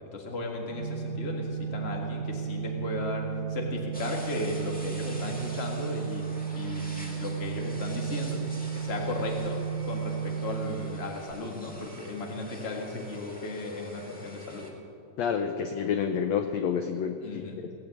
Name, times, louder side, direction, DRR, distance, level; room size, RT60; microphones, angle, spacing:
voice 1, 0.0-6.2 6.5-8.4 8.7-14.7 17.2-17.6, left 2 dB, 25° left, 0 dB, 1.4 m, -35 dB
Organ, 0.7-11.6, right 7 dB, 70° right, 2.9 m, -34 dB
sound 1, 3.9-14.7, right 1 dB, 5° left, 0.7 m, -47 dB
voice 2, 15.2-17.4, left 7 dB, 80° left, 6 dB, 1.6 m, -29 dB
19.0 x 8.0 x 8.4 m, 2.7 s
omnidirectional pair, 3.8 m